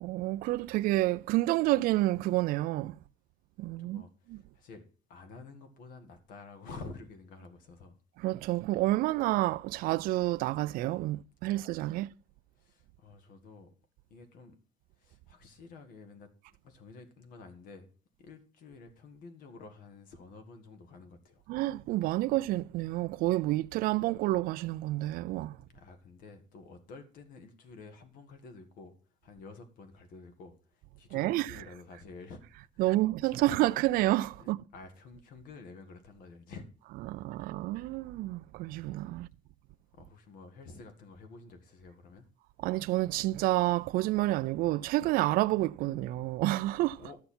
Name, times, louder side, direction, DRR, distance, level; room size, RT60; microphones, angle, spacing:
voice 1, 0.0-2.9 3.6-4.0 4.3-4.4 8.2-12.1 21.5-25.6 31.1-31.6 32.8-34.6 36.9-39.3 42.6-47.1, right 17 dB, 70° right, 0.4 m, -29 dB
voice 2, 3.8-4.8 5.1-8.0 12.6-13.7 14.1-14.6 15.0-16.3 16.6-17.9 18.2-21.4 25.7-29.0 29.2-32.4 32.7-33.0 33.4-33.5 34.4-36.7 37.4-37.5 39.9-42.3 47.0-47.2, left 4 dB, 65° left, 1.8 m, -50 dB
12.5 x 6.9 x 4.3 m
cardioid pair, 150°, 15 cm